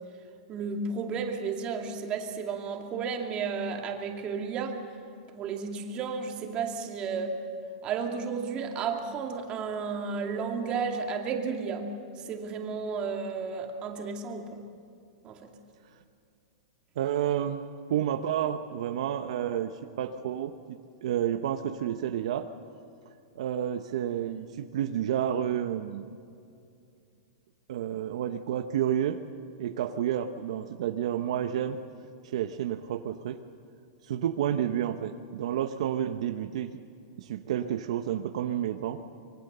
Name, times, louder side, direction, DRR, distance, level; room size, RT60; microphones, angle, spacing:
voice 1, 0.5-4.8 5.3-7.4 7.8-11.9 12.2-14.5 15.2-15.5, right 5 dB, 30° right, 3 dB, 2.5 m, -33 dB
voice 2, 17.0-17.6 17.9-22.5 23.4-26.1 27.7-29.2 29.6-31.8 32.2-33.4 34.0-36.8 37.2-39.0, right 10 dB, 70° right, 7 dB, 1.0 m, -30 dB
25.0 x 22.5 x 6.9 m, 2.4 s
supercardioid pair, 150°, 4 cm